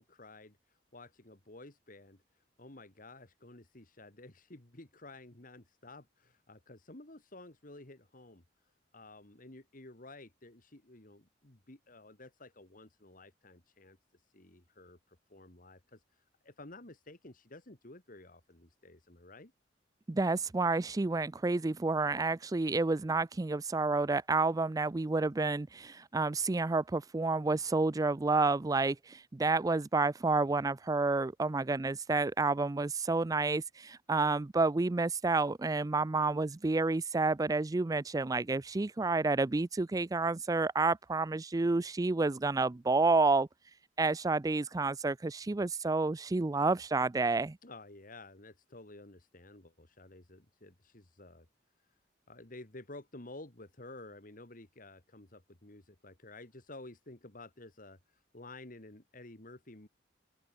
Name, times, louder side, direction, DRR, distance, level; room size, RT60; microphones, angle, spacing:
voice 1, 0.0-19.5 47.6-51.5 51.8-52.0 52.3-59.9, left 2 dB, 50° left, 2.5 m, -52 dB
voice 2, 20.1-43.5 44.0-47.6, right 3 dB, 20° right, 0.4 m, -30 dB
open air
head